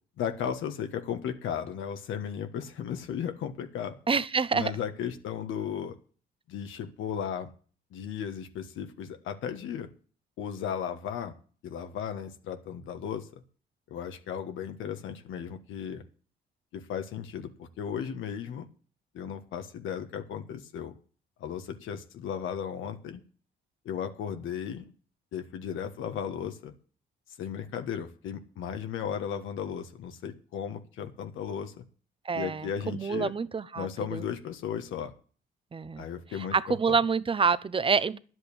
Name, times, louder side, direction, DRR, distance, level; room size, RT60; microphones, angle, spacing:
voice 1, 0.2-3.9 4.5-6.0 6.5-7.5 7.9-9.9 10.4-11.3 11.6-13.4 13.9-16.0 16.7-18.7 19.1-20.9 21.4-23.2 23.8-24.9 25.3-26.7 27.4-31.8 32.3-33.3 33.8-35.1 36.0-36.5 36.9-37.0, left 8 dB, 80° left, 1.4 m, -35 dB
voice 2, 4.1-4.7 32.2-34.2 35.7-36.1 36.5-38.2, right 5 dB, 25° right, 0.7 m, -27 dB
10.5 x 8.0 x 8.5 m
cardioid pair, 90°, 20 cm